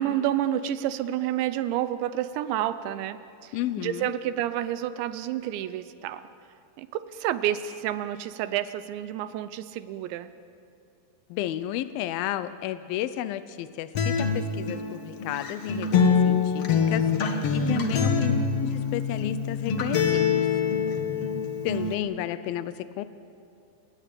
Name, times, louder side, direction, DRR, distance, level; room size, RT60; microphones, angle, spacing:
voice 1, 0.0-6.3 6.8-10.3 17.6-18.2, right 12 dB, 80° right, 13 dB, 3.0 m, -30 dB
voice 2, 3.5-4.1 11.3-20.5 21.6-23.0, left 13 dB, 90° left, 13 dB, 2.1 m, -32 dB
Acoustic guitar, 13.9-21.9, left 6 dB, 70° left, 1.4 m, -25 dB
30.0 x 18.5 x 8.5 m, 2.6 s
omnidirectional pair, 5.3 m